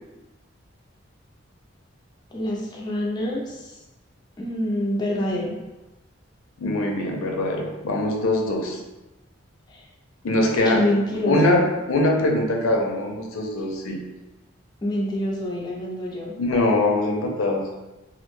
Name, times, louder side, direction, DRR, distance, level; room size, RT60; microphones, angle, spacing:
voice 1, 2.3-3.8 4.4-5.5 9.7-9.8 10.6-11.6 14.8-16.3, left 1 dB, 20° left, -4 dB, 0.3 m, -26 dB
voice 2, 6.6-8.8 10.2-10.8 11.3-11.6 11.9-14.0 16.4-17.6, left 1 dB, 85° left, 1 dB, 0.5 m, -22 dB
2.4 x 2.1 x 2.9 m, 1.1 s
head